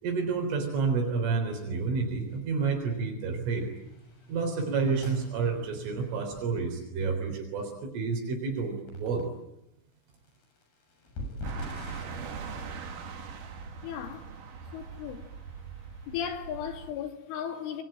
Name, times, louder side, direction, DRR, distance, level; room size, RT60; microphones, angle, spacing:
voice 1, 0.0-3.7 4.3-9.3, right 4 dB, 80° right, 6.3 m, -29 dB
Thunder - bad microphone, 2.3-2.4 2.8-3.0 3.5-6.4 8.6-8.7 8.9-9.2 10.1-12.1, left 1 dB, 50° left, 9.0 m, -43 dB
sound 1, 11.4-16.9, right 5 dB, 50° right, 3.1 m, -41 dB
voice 2, 13.8-14.3 14.7-15.3 16.1-17.8, left 8 dB, 75° left, 4.7 m, -36 dB
27.0 x 23.5 x 9.0 m
omnidirectional pair, 5.6 m